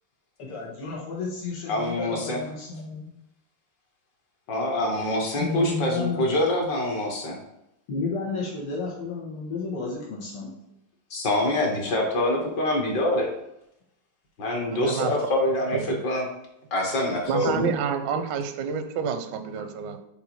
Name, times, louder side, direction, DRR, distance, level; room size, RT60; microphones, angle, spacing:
voice 1, 0.4-3.1 5.4-6.3 7.9-10.5 17.4-17.7, left 4 dB, 85° left, -4 dB, 2.3 m, -32 dB
voice 2, 1.7-2.4 4.5-7.4 11.1-13.3 14.4-15.8 16.0-16.2 16.7-17.6, left 1 dB, 55° left, 1 dB, 1.8 m, -25 dB
voice 3, 14.7-15.3 15.7-16.0 17.3-20.0, right 7 dB, 75° right, 8 dB, 1.1 m, -29 dB
5.6 x 4.1 x 4.5 m, 0.83 s
omnidirectional pair, 2.4 m